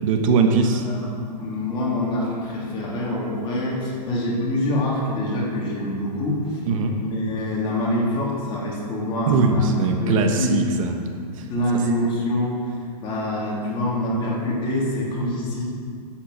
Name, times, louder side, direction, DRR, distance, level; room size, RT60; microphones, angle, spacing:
voice 1, 0.0-0.8 6.7-6.9 9.3-10.9, right 4 dB, 50° right, 4 dB, 1.2 m, -20 dB
voice 2, 0.6-6.6 7.0-9.7 10.0-10.6 11.5-12.6 13.0-15.6, left 1 dB, 25° left, -4 dB, 3.0 m, -25 dB
10.0 x 7.9 x 6.4 m, 2.2 s
hypercardioid pair, 155°, 21 cm